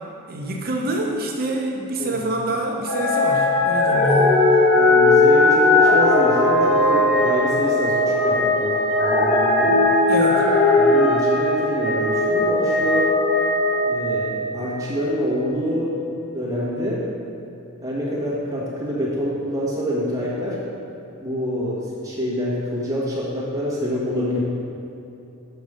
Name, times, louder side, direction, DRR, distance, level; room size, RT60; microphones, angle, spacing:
voice 1, 0.3-4.3 10.1-10.4, right 1 dB, 45° right, 1 dB, 0.6 m, -26 dB
sound 1, 2.9-14.8 15.4-15.5, left 2 dB, 60° left, 1.2 m, -18 dB
voice 2, 4.2-9.8 10.7-13.1 13.9-17.0 17.8-20.6 21.2-24.4, equal, 15° right, -7 dB, 1.6 m, -26 dB
6.9 x 5.2 x 5.0 m, 2.8 s
head